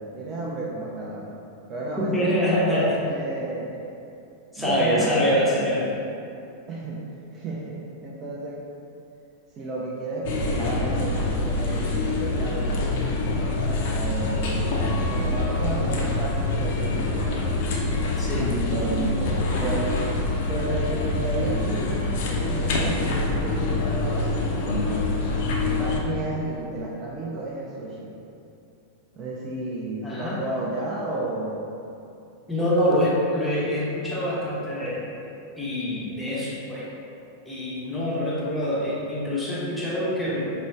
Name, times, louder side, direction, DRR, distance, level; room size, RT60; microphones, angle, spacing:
voice 1, 0.0-1.4 1.7-2.3 2.7-3.8 4.6-5.7 6.7-7.0 7.3-8.6 9.6-13.2 13.8-17.6 18.3-20.0 20.5-25.1 25.6-28.1 29.2-31.6, right 2 dB, 30° right, -5 dB, 0.4 m, -32 dB
voice 2, 2.0-2.9 4.5-5.9 18.2-18.7 30.0-30.4 32.5-35.1 35.6-36.9 37.4-40.5, equal, 5° left, -8 dB, 0.7 m, -25 dB
sound 1, 10.2-26.0, left 2 dB, 50° left, 0.4 m, -25 dB
4.9 x 2.1 x 2.3 m, 2.7 s
figure-of-eight pair, 90°, 0 cm